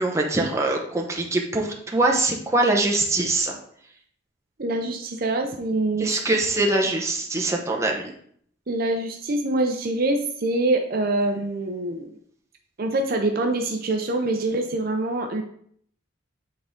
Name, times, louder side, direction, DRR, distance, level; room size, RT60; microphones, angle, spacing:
voice 1, 0.0-3.5 6.0-8.1, right 2 dB, 15° right, 0 dB, 0.8 m, -23 dB
voice 2, 4.6-6.2 8.7-12.1 12.8-15.4, right 2 dB, 50° right, 4 dB, 0.6 m, -25 dB
8.6 x 3.7 x 3.6 m, 0.64 s
head